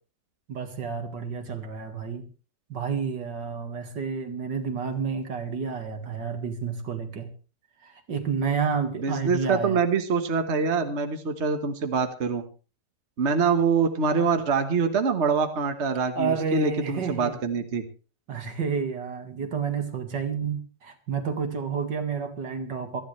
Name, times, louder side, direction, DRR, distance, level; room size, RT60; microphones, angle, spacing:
voice 1, 0.5-2.3 2.7-7.3 7.8-9.8 16.1-17.3 18.3-23.0, right 6 dB, 75° right, 6 dB, 2.6 m, -30 dB
voice 2, 9.0-12.4 13.2-17.8, right 5 dB, 40° right, 7 dB, 1.6 m, -25 dB
27.0 x 10.5 x 3.3 m, 0.36 s
omnidirectional pair, 1.9 m